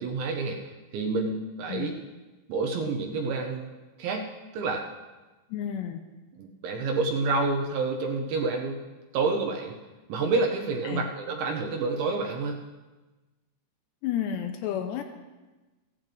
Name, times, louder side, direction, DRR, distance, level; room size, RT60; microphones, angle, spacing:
voice 1, 0.0-1.9 2.5-3.7 4.0-4.3 4.5-4.8 6.4-8.8 9.1-9.8 10.1-12.6, right 3 dB, 75° right, 1 dB, 3.0 m, -28 dB
voice 2, 5.5-6.0 10.8-11.1 14.0-15.0, left 9 dB, 85° left, 7 dB, 2.5 m, -31 dB
16.0 x 15.0 x 3.4 m, 1.2 s
omnidirectional pair, 5.5 m